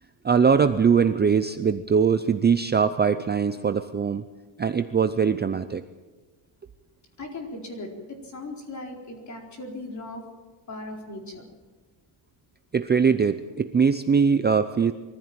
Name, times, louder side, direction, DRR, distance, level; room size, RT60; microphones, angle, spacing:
voice 1, 0.2-4.2 4.6-5.8 12.7-14.9, right 6 dB, 20° right, 9 dB, 0.6 m, -21 dB
voice 2, 7.2-10.2 10.7-11.5, left 2 dB, 35° left, 2 dB, 4.4 m, -38 dB
23.0 x 15.0 x 8.9 m, 1.3 s
cardioid pair, 145°, 49 cm